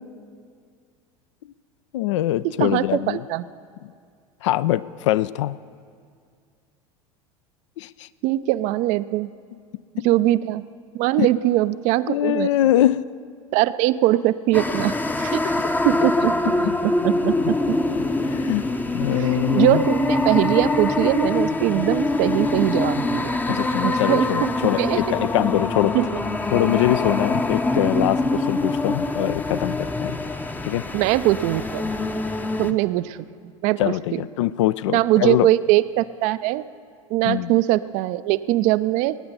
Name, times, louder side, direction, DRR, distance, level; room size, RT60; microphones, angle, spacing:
voice 1, 1.9-3.2 4.4-5.6 7.8-8.1 11.2-11.3 12.1-13.0 16.6-16.7 18.2-18.6 18.9-19.8 23.5-26.0 26.5-30.2 30.6-30.8 32.6-32.8 33.8-35.5 37.2-37.5, left 14 dB, 60° left, 17 dB, 0.4 m, -23 dB
voice 2, 2.4-3.5 8.2-9.3 10.0-10.6 10.9-12.5 13.5-15.6 15.8-16.4 16.8-17.8 19.2-23.3 23.8-25.0 25.9-26.1 30.9-31.9 32.6-33.2 33.6-34.2 34.9-36.6 37.1-39.2, right 16 dB, 45° right, 15 dB, 0.4 m, -21 dB
sound 1, 14.5-32.7, left 2 dB, 10° left, 0.7 m, -24 dB
21.0 x 9.5 x 5.5 m, 2.2 s
figure-of-eight pair, 75°, 18 cm